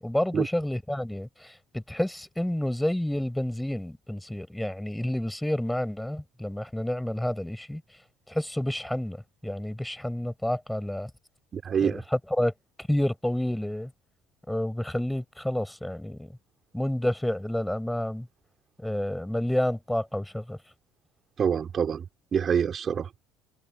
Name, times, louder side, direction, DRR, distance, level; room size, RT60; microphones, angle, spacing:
voice 1, 0.0-7.8 8.3-9.2 9.4-11.1 11.8-12.0 12.4-12.5 12.8-13.9 14.5-16.3 16.7-18.3 18.8-20.6, left 1 dB, 5° left, 6.5 m, -29 dB
voice 2, 11.5-12.0 21.4-22.0 22.3-23.1, right 7 dB, 40° right, 5.1 m, -26 dB
hypercardioid pair, 70°, 0 cm